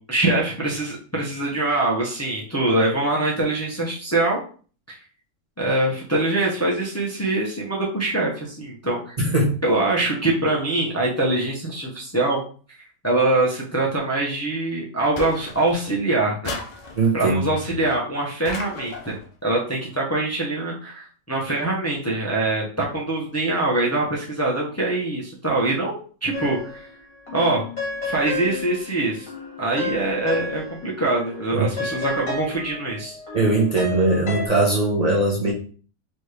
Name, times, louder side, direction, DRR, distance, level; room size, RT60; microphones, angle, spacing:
voice 1, 0.1-4.4 4.9-5.0 5.6-9.2 9.6-12.4 13.0-16.5 17.1-19.2 19.4-26.9 27.3-27.6 28.0-29.3 29.6-33.2, right 2 dB, 15° left, -4 dB, 0.8 m, -23 dB
sound 1, 15.2-15.9 16.4-17.3 18.4-19.3, left 3 dB, 45° left, 0.6 m, -35 dB
voice 2, 16.9-17.5 31.5-31.7 33.3-35.5, right 2 dB, 35° right, -3 dB, 0.9 m, -20 dB
sound 2, 26.3-27.0 27.3-31.0 31.3-34.5, left 3 dB, 70° left, 2.0 m, -32 dB
4.2 x 3.1 x 3.3 m, 0.40 s
omnidirectional pair, 1.4 m